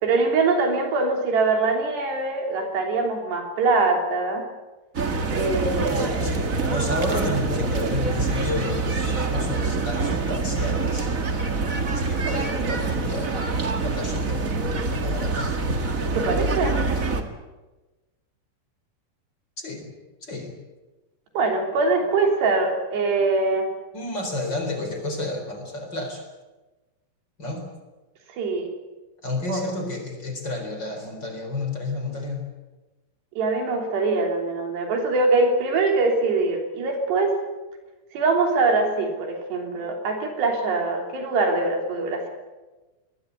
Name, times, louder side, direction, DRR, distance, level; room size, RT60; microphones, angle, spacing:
voice 1, 0.0-4.4 5.3-6.1 16.1-16.8 21.4-23.7 28.4-28.7 29.5-29.6 33.4-37.4 38.1-42.3, right 3 dB, 80° right, 3 dB, 5.4 m, -23 dB
sound 1, 4.9-17.2, right 3 dB, 65° right, 0.8 m, -25 dB
voice 2, 5.9-11.1 11.9-13.4 13.8-14.5 14.9-15.6 19.6-19.9 20.2-20.5 23.9-26.2 27.4-27.7 29.2-32.5, left 2 dB, 25° left, 4 dB, 4.5 m, -31 dB
22.5 x 20.5 x 8.3 m, 1.2 s
omnidirectional pair, 4.8 m